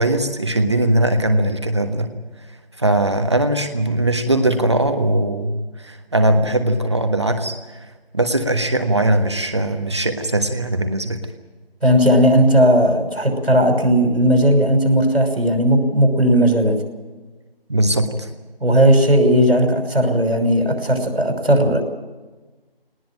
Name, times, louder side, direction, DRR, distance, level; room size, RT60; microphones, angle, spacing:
voice 1, 0.0-2.1 2.8-11.2 17.7-18.3, right 1 dB, 30° right, 7 dB, 1.4 m, -20 dB
voice 2, 11.8-16.8 18.6-21.8, equal, 85° right, 5 dB, 6.1 m, -16 dB
19.5 x 19.5 x 8.9 m, 1.2 s
figure-of-eight pair, 170°, 30 cm